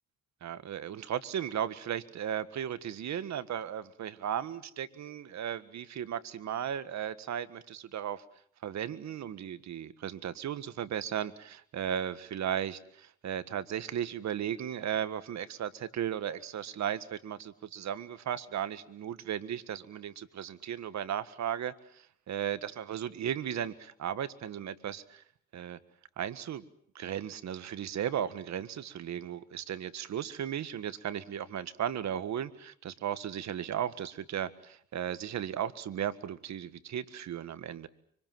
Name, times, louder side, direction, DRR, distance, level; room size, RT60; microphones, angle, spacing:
voice 1, 0.4-8.2 8.6-21.7 22.3-25.2 25.5-25.8 26.2-26.6 26.9-37.9, right 9 dB, 65° right, 14 dB, 1.6 m, -36 dB
25.5 x 25.0 x 7.6 m, 0.63 s
cardioid pair, 90°, 30 cm